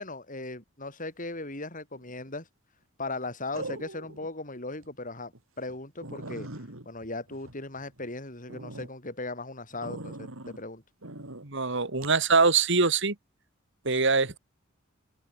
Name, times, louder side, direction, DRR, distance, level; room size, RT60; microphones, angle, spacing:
voice 1, 0.0-2.5 3.0-6.5 6.9-10.8, left 2 dB, 40° left, 7.3 m, -38 dB
sound 1, 1.9-2.3 3.5-4.3 4.7-4.9 5.3-5.4 5.7-5.8 6.0-8.1 8.5-8.9 9.8-10.6 11.0-11.4 12.0-12.2, right 2 dB, 80° right, 3.8 m, -41 dB
voice 2, 11.4-13.1 13.9-14.4, right 4 dB, 65° right, 2.4 m, -23 dB
open air
head